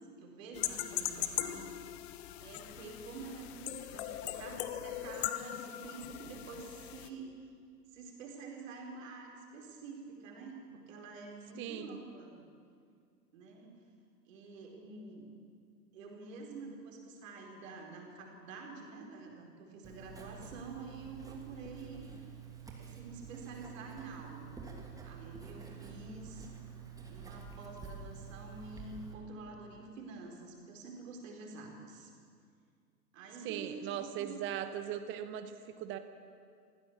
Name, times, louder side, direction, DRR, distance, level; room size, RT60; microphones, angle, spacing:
voice 1, 0.0-1.8 2.4-7.3 7.9-12.3 13.3-13.7 14.3-15.3 15.9-22.1 22.7-24.7 25.0-26.8 27.1-32.1 33.1-34.3, right 3 dB, 50° right, 1 dB, 4.6 m, -48 dB
sound 1, 0.5-7.1, left 13 dB, 40° left, 1.2 m, -40 dB
voice 2, 11.6-12.0 33.4-36.0, right 10 dB, 25° right, 10 dB, 1.1 m, -39 dB
Writing, 19.8-29.1, right 6 dB, 5° right, 2.6 m, -48 dB
23.0 x 16.0 x 7.3 m, 2.2 s
figure-of-eight pair, 110°, 48 cm